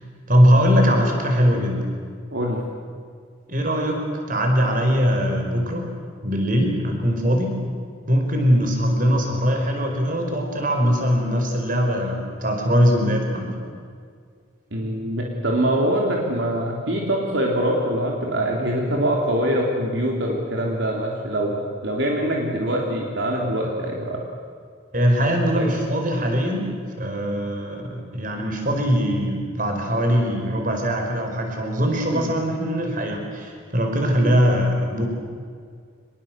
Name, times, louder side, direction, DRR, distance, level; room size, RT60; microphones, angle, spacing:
voice 1, 0.3-1.9 3.5-4.0 4.3-5.9 6.2-7.5 8.1-13.5 24.9-26.7 27.0-35.1, equal, 45° right, 3 dB, 4.7 m, -21 dB
voice 2, 2.3-2.6 14.7-24.2 25.6-25.7 32.1-32.3, right 1 dB, 65° right, -1 dB, 3.4 m, -24 dB
25.5 x 21.5 x 7.6 m, 2.1 s
head